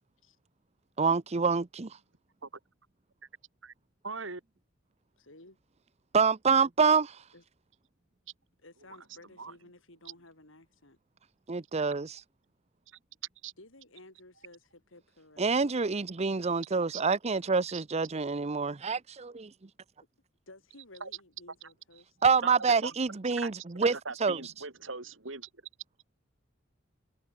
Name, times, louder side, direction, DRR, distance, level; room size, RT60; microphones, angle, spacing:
voice 1, 1.0-2.0 6.1-7.2 11.5-12.2 15.4-19.5 22.2-23.9 24.2-24.4, right 5 dB, 30° right, 0.6 m, -27 dB
voice 2, 4.0-4.4 9.4-9.5 13.4-13.5 16.9-17.0 17.7-17.8 21.0-21.1 22.4-22.9 23.4-23.5 24.0-25.5, right 4 dB, 70° right, 3.3 m, -39 dB
voice 3, 5.2-5.6 7.3-7.4 8.6-11.0 13.6-15.6 20.5-22.2, left 2 dB, 75° left, 6.3 m, -55 dB
head